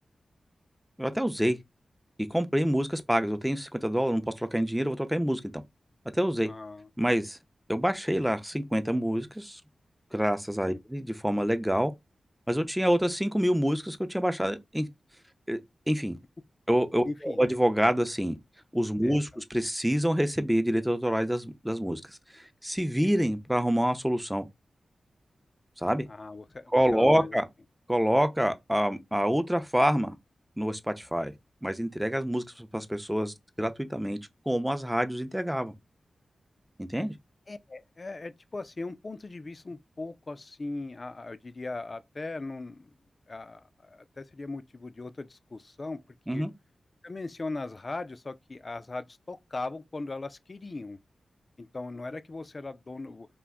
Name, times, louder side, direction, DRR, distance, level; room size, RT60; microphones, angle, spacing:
voice 1, 1.0-1.6 2.3-5.4 6.1-6.5 7.0-7.4 7.7-9.6 10.1-11.9 12.5-14.9 15.5-15.6 15.9-16.2 16.7-18.4 18.7-24.5 25.8-26.1 26.7-27.4 27.9-30.1 30.6-31.3 31.6-34.2 34.5-35.7 36.8-37.1 46.3-46.5, equal, 5° right, 0.6 m, -27 dB
voice 2, 6.4-6.9 10.7-10.8 17.0-17.5 19.0-19.4 26.1-27.4 37.5-42.9 43.3-46.0 46.3-46.4 47.0-51.0 51.6-53.3, left 3 dB, 45° left, 0.3 m, -39 dB
2.4 x 2.1 x 3.6 m
cardioid pair, 40°, 0 cm